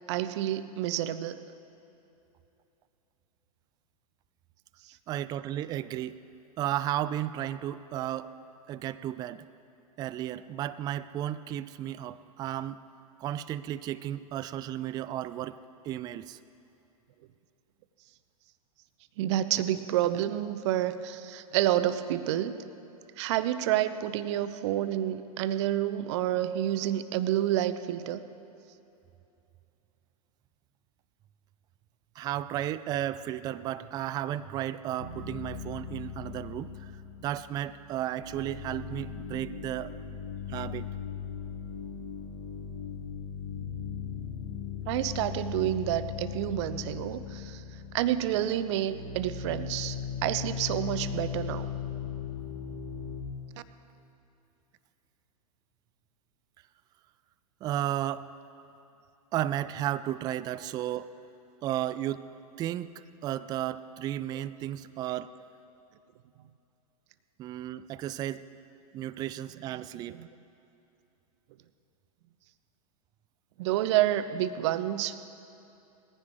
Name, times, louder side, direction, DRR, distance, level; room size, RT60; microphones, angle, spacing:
voice 1, 0.1-1.4 19.2-22.6 23.2-28.2 44.9-47.6 47.9-51.7 70.1-70.3 73.6-75.2, right 12 dB, 45° right, 13 dB, 0.7 m, -29 dB
voice 2, 5.1-6.2 6.6-8.3 8.7-9.5 10.0-12.8 13.2-15.6 15.8-16.4 32.2-36.9 37.2-39.9 40.5-40.9 57.6-58.3 59.3-61.1 61.6-62.2 62.6-65.3 67.4-68.5 68.9-70.2, right 12 dB, 20° right, 14 dB, 0.3 m, -33 dB
sound 1, 35.0-37.8 38.1-53.2, left 7 dB, 85° left, 1.7 m, -38 dB
19.5 x 15.0 x 3.6 m, 2.8 s
figure-of-eight pair, 100°, 20 cm